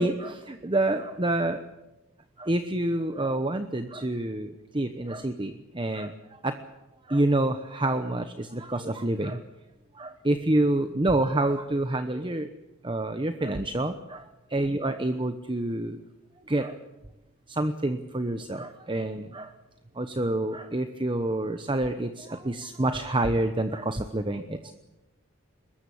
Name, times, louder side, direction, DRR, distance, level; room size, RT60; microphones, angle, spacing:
voice 1, 0.0-1.6 2.4-6.6 7.1-9.4 9.9-12.5 12.8-16.0 16.5-16.8 17.5-19.5 20.0-24.7, right 1 dB, 25° right, 9 dB, 1.0 m, -28 dB
23.5 x 20.5 x 8.6 m, 1.0 s
head